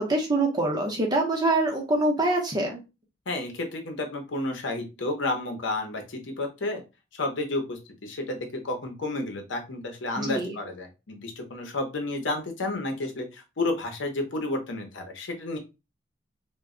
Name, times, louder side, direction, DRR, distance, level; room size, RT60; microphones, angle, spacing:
voice 1, 0.0-2.8 10.2-10.6, right 2 dB, 20° right, 1 dB, 0.7 m, -25 dB
voice 2, 3.3-6.8 7.1-15.6, left 2 dB, 85° left, 4 dB, 0.7 m, -31 dB
2.2 x 2.1 x 3.5 m, 0.27 s
head